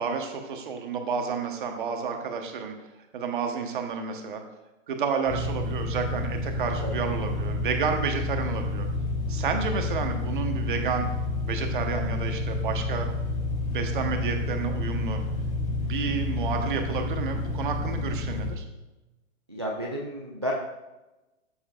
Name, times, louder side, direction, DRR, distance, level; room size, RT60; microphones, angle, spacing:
voice 1, 0.0-2.7 3.1-4.4 4.9-8.9 9.3-11.1 11.5-13.1 13.6-15.2 15.7-18.6, right 6 dB, 40° right, 4 dB, 1.2 m, -30 dB
sound 1, 5.3-18.5, left 2 dB, 15° left, 1.9 m, -29 dB
voice 2, 19.5-20.5, equal, 20° right, -2 dB, 0.4 m, -32 dB
14.0 x 7.0 x 2.5 m, 1.0 s
hypercardioid pair, 165°, 40 cm